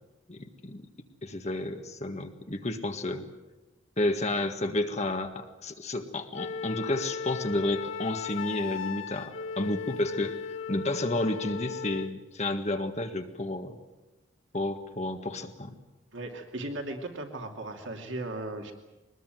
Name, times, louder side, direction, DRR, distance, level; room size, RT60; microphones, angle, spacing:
voice 1, 0.3-0.8 1.2-3.3 4.0-10.3 10.7-13.8 14.5-15.8, left 2 dB, 35° left, 6 dB, 1.7 m, -31 dB
Wind instrument woodwind instrument, 6.3-12.2, left 5 dB, 85° left, 1.8 m, -36 dB
voice 2, 16.1-18.7, right 2 dB, 70° right, 3 dB, 2.6 m, -37 dB
24.0 x 20.0 x 9.2 m, 1.1 s
head